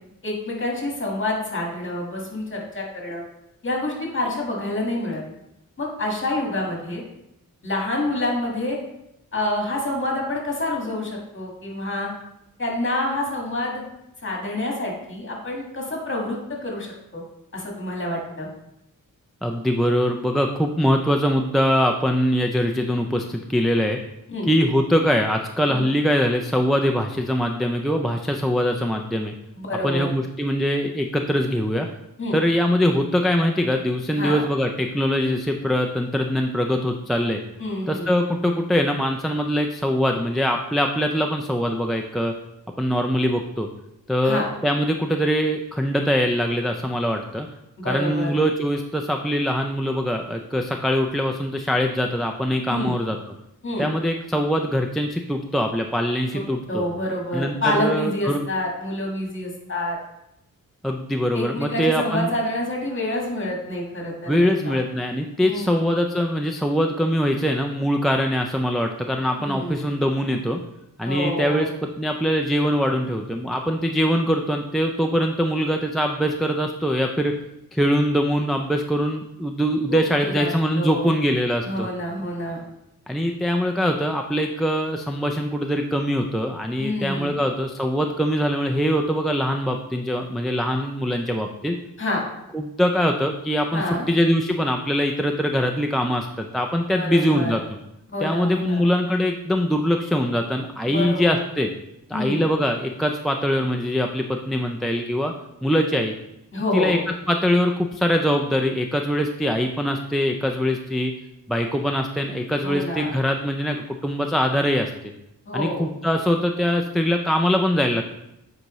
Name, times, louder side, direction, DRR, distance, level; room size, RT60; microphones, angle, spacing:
voice 1, 0.2-3.2 3.6-5.2 5.8-7.0 7.6-8.8 9.3-12.1 12.6-13.8 14.2-16.9 17.1-17.2 17.5-18.5 24.3-24.5 25.7-25.9 29.6-30.1 32.2-32.4 34.2-34.4 37.6-38.1 44.2-44.5 47.8-48.4 52.7-52.9 53.6-53.9 56.7-60.0 61.3-64.8 65.4-65.8 69.4-69.9 71.0-71.7 79.9-81.1 81.6-82.6 86.8-87.4 92.0-92.2 93.7-94.1 97.0-97.6 98.1-98.8 100.8-101.4 102.1-102.5 106.5-107.0 112.6-113.2 115.4-115.9, left 1 dB, 35° left, -1 dB, 1.7 m, -27 dB
voice 2, 19.4-24.0 24.5-29.3 29.8-31.9 32.3-37.4 37.9-42.3 42.8-43.7 44.1-47.5 47.8-53.2 53.8-56.8 57.3-58.4 60.8-62.3 64.3-70.6 71.0-71.7 72.0-77.3 77.7-81.9 83.1-91.8 92.5-97.6 98.2-101.7 102.1-105.3 105.6-106.1 106.7-107.0 107.3-111.1 111.5-115.1 115.5-118.1, equal, ahead, 2 dB, 0.3 m, -22 dB
7.8 x 4.8 x 3.0 m, 0.84 s
wide cardioid pair, 125°, 34 cm